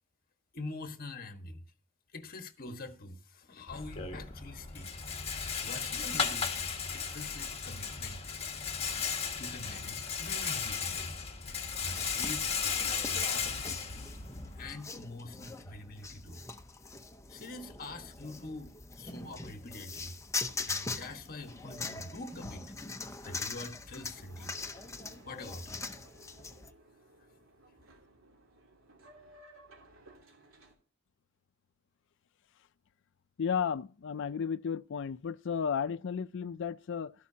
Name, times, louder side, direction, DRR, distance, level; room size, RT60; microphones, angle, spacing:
voice 1, 0.5-1.7 2.1-4.9 5.6-8.3 9.0-14.2 14.5-16.4 17.3-20.2 20.6-22.6 23.2-24.8 25.2-25.8 26.4-26.5, left 2 dB, 45° left, 1.4 m, -45 dB
Rattle, 3.7-14.7, left 6 dB, 30° left, 1.8 m, -35 dB
sound 1, 11.9-26.7, left 3 dB, 15° left, 0.8 m, -42 dB
Boat Water vehicle, 24.1-30.7, right 1 dB, 80° right, 3.2 m, -58 dB
voice 2, 33.4-37.1, left 7 dB, 60° left, 0.4 m, -33 dB
13.0 x 11.5 x 2.8 m
head